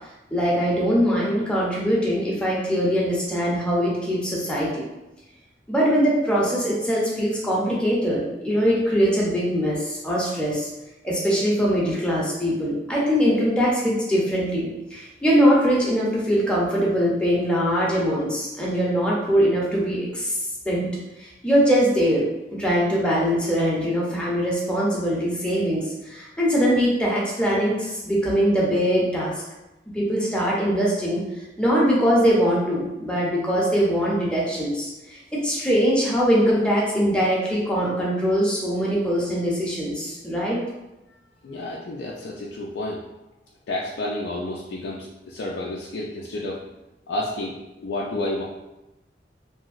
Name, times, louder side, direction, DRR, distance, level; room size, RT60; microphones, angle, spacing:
voice 1, 0.3-4.8 5.7-10.7 11.0-20.4 20.7-20.9 21.2-22.3 22.6-29.3 29.9-40.6, equal, 5° left, -6 dB, 0.6 m, -22 dB
voice 2, 41.4-43.0 43.7-46.6 47.1-47.6 47.8-48.4, left 1 dB, 80° left, -4 dB, 0.4 m, -30 dB
2.9 x 2.7 x 2.4 m, 0.98 s
head